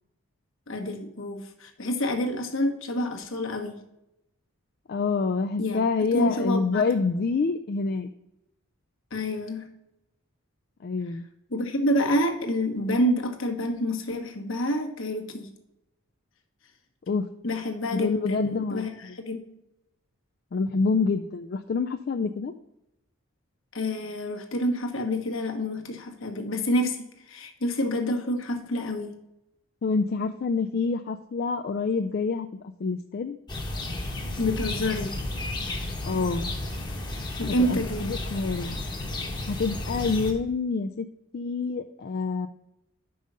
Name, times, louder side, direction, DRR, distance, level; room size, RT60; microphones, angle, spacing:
voice 1, 0.7-3.8 5.6-5.8 6.1-6.8 9.1-9.7 11.5-15.5 17.4-19.4 23.7-29.1 34.4-35.2 37.4-38.1, left 1 dB, 65° left, 4 dB, 1.2 m, -28 dB
voice 2, 4.9-8.1 10.8-11.2 17.1-17.3 17.9-18.9 20.5-22.5 29.8-32.5 32.8-33.4 36.0-36.5 37.7-38.8 39.5-41.1 41.3-42.5, left 4 dB, 45° left, 7 dB, 0.3 m, -27 dB
sound 1, 33.5-40.3, left 2 dB, 20° left, 1.0 m, -33 dB
5.4 x 5.1 x 6.6 m, 0.86 s
head